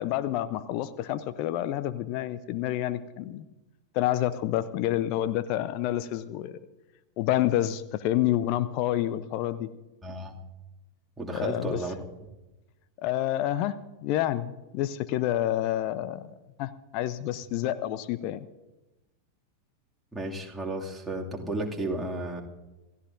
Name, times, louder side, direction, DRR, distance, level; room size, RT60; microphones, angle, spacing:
voice 1, 0.0-3.5 3.9-6.6 7.2-9.7 11.3-11.8 13.0-18.4, left 13 dB, 45° left, 14 dB, 0.6 m, -28 dB
voice 2, 10.0-10.4 11.2-12.1 20.1-22.4, right 2 dB, 5° right, -2 dB, 2.4 m, -33 dB
27.5 x 15.0 x 2.6 m, 1.1 s
figure-of-eight pair, 90°, 0 cm